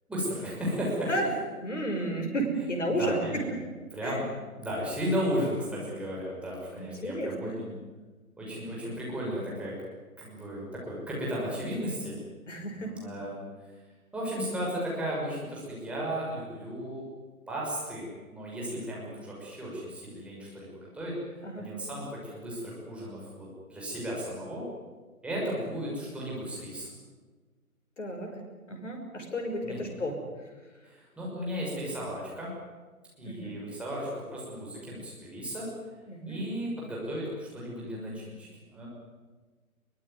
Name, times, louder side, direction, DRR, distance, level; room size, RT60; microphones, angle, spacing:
voice 1, 0.1-1.1 2.9-3.4 3.9-4.3 4.6-7.7 8.4-9.7 10.2-12.1 12.8-13.4 14.1-17.0 17.5-21.1 21.6-24.7 25.2-26.9 29.6-29.9 30.8-32.5 33.2-35.7 36.3-38.5 38.7-38.9, equal, 5° right, -5 dB, 6.2 m, -34 dB
voice 2, 1.6-3.6 4.0-4.2 6.8-7.6 12.5-12.9 21.4-21.7 28.0-28.4 28.7-30.2 33.2-33.5 36.1-36.4, right 1 dB, 55° left, 3 dB, 6.1 m, -32 dB
23.5 x 22.0 x 9.7 m, 1.4 s
figure-of-eight pair, 140°, 44 cm